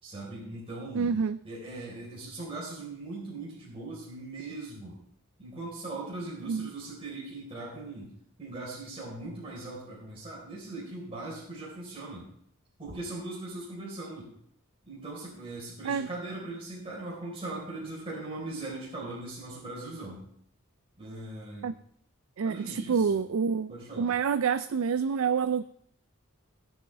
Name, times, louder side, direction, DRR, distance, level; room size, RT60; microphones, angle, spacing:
voice 1, 0.0-1.1 1.4-5.0 5.4-8.1 8.4-12.3 12.8-14.3 14.8-20.2 21.0-21.7 22.4-23.2 23.7-24.1, right 2 dB, 25° right, -6 dB, 4.2 m, -40 dB
voice 2, 0.9-1.4 6.5-6.7 15.9-16.1 21.6-21.7 22.4-23.7 24.0-25.6, right 6 dB, 75° right, 12 dB, 0.4 m, -27 dB
21.5 x 7.4 x 3.4 m, 0.68 s
head